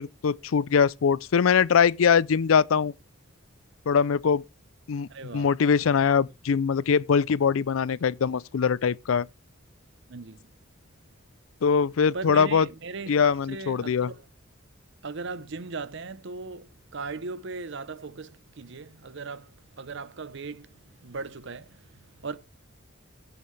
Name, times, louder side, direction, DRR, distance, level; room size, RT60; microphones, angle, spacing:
voice 1, 0.0-2.9 3.9-4.4 4.9-9.3 11.6-12.7 13.1-14.1, left 6 dB, 80° left, 0.4 m, -22 dB
voice 2, 5.1-5.5 10.1-10.5 12.1-14.2 15.0-22.4, right 4 dB, 60° right, 0.8 m, -38 dB
16.5 x 7.0 x 3.3 m
head